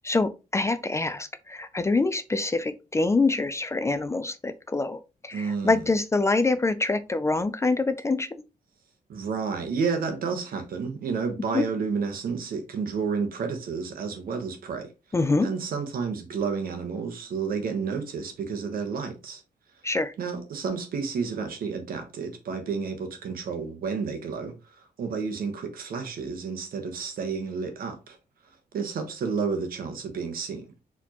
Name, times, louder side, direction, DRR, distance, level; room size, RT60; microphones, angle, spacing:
voice 1, 0.0-8.4 11.5-11.6 15.1-15.5 19.8-20.1, left 3 dB, 20° left, 0.3 m, -25 dB
voice 2, 5.3-5.8 9.1-14.9 15.4-19.4 20.2-28.2 28.7-30.7, right 5 dB, 70° right, 1.2 m, -31 dB
4.6 x 3.6 x 2.9 m
wide cardioid pair, 145°, 15 cm